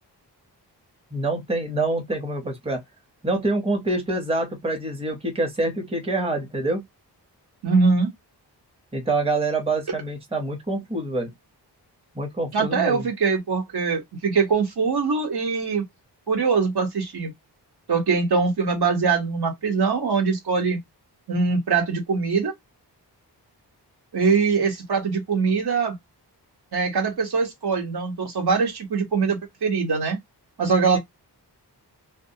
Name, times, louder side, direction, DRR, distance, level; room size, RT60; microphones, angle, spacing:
voice 1, 1.1-2.8 3.2-6.8 8.9-11.3 12.2-13.0, right 2 dB, 15° right, 0.7 m, -26 dB
voice 2, 7.6-8.1 12.5-15.8 16.3-17.3 17.9-20.8 21.3-22.5 24.1-26.0 26.7-30.2 30.6-31.0, right 5 dB, 65° right, 1.0 m, -22 dB
2.3 x 2.1 x 2.7 m
wide cardioid pair, 115°, 41 cm